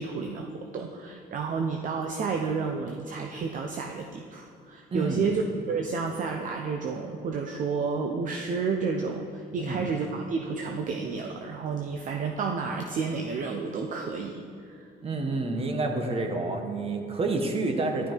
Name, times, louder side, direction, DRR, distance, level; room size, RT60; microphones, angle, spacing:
voice 1, 0.0-14.9, right 5 dB, 50° right, 3 dB, 0.9 m, -31 dB
voice 2, 4.9-5.2 9.6-9.8 15.0-18.1, right 2 dB, 35° right, 4 dB, 1.6 m, -29 dB
12.0 x 11.5 x 4.6 m, 2.3 s
cardioid pair, 110°, 17 cm